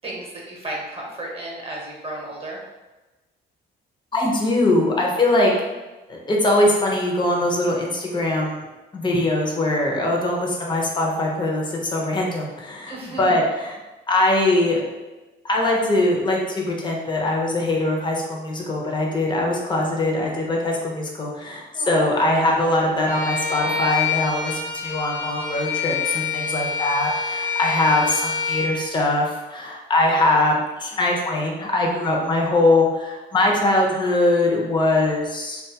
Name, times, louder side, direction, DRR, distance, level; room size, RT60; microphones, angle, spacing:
voice 1, 0.0-2.6 12.9-13.3 21.7-22.6, right 1 dB, 30° right, -3 dB, 0.8 m, -33 dB
voice 2, 4.1-5.5 6.1-8.6 8.9-13.7 14.1-14.8 15.4-35.6, left 2 dB, 25° left, -1 dB, 0.6 m, -22 dB
Bowed string instrument, 23.1-28.8, left 5 dB, 70° left, 1.0 m, -26 dB
2.6 x 2.3 x 2.8 m, 1.1 s
cardioid pair, 90°, 20 cm